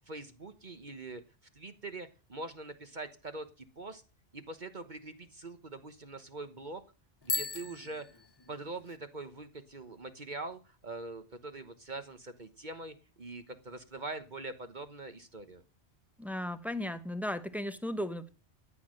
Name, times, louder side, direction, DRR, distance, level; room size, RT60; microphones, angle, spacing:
voice 1, 0.1-1.2 1.5-3.5 3.8-4.0 4.3-6.8 7.2-8.0 8.5-15.6, right 2 dB, 40° right, 1.3 m, -43 dB
Bicycle bell, 7.2-9.0, left 3 dB, 25° left, 0.7 m, -38 dB
voice 2, 16.2-18.3, left 1 dB, ahead, 1.0 m, -36 dB
14.0 x 9.4 x 6.5 m
omnidirectional pair, 1.2 m